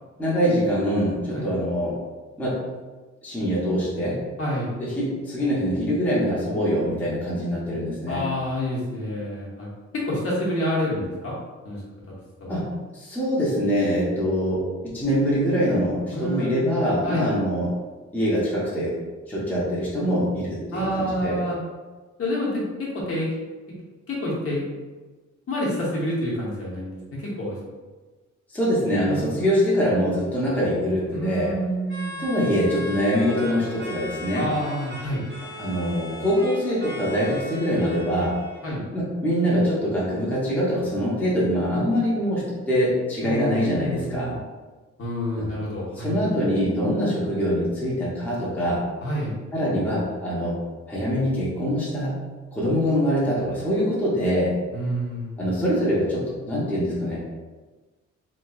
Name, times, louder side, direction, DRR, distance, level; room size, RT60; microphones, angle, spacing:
voice 1, 0.2-2.0 2.4-2.6 3.2-4.3 4.8-8.2 12.5-17.7 18.1-19.0 19.3-21.4 28.5-31.5 32.2-34.5 35.6-38.4 38.9-44.3 45.4-45.5 46.0-48.8 49.5-50.6 50.9-52.2 52.5-54.5 55.4-57.2, equal, 5° left, -8 dB, 0.7 m, -24 dB
voice 2, 4.4-4.7 8.1-9.7 9.9-11.4 11.6-11.8 12.4-12.6 16.1-16.6 17.0-17.3 20.7-21.6 22.2-23.3 24.1-24.7 25.5-27.6 29.0-29.5 31.1-32.2 34.3-35.2 38.6-38.9 43.2-44.4 45.0-46.3 49.0-49.4 54.7-55.5, equal, 50° left, -6 dB, 1.0 m, -28 dB
sound 1, 31.9-38.7, left 1 dB, 40° right, 0.8 m, -38 dB
3.1 x 2.7 x 2.3 m, 1.3 s
wide cardioid pair, 145°, 30 cm